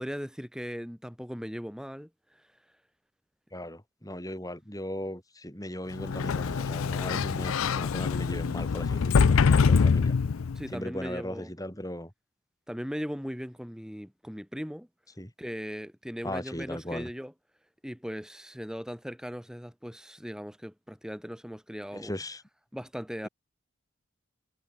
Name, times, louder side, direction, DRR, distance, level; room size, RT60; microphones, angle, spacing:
voice 1, 0.0-2.6 10.5-11.5 12.7-14.9 15.4-17.3 17.8-22.1 22.7-23.3, equal, 5° right, 5.3 m, -38 dB
voice 2, 3.5-10.1 10.7-12.1 15.2-15.3 16.2-17.1 21.9-22.4, left 1 dB, 15° left, 6.8 m, -37 dB
Sliding door, 6.0-10.7, left 5 dB, 80° left, 0.5 m, -24 dB
head